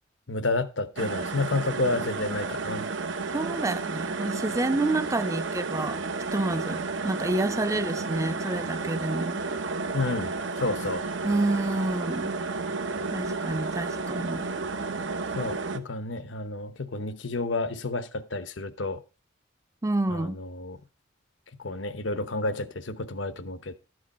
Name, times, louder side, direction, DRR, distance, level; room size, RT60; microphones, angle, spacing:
voice 1, 0.3-2.9 9.9-11.1 15.3-19.0 20.1-20.8 21.6-23.7, left 2 dB, 75° left, 0.9 m, -30 dB
sound 1, 1.0-15.8, right 4 dB, 80° right, 1.0 m, -32 dB
voice 2, 3.3-6.0 6.3-9.4 11.2-12.3 13.1-14.5 19.8-20.4, right 2 dB, 15° right, 0.5 m, -28 dB
12.5 x 8.0 x 4.2 m
head